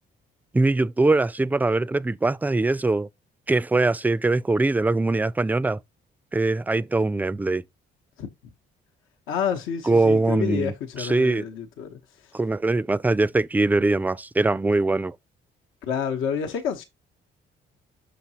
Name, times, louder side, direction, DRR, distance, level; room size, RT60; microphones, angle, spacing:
voice 1, 0.5-3.1 3.5-5.8 6.3-7.6 9.9-10.7 11.0-11.4 12.3-15.2, right 2 dB, 10° right, 0.3 m, -22 dB
voice 2, 9.3-12.4 15.8-16.8, left 7 dB, 90° left, 0.9 m, -29 dB
6.2 x 5.9 x 2.8 m
cardioid pair, 90°, 20 cm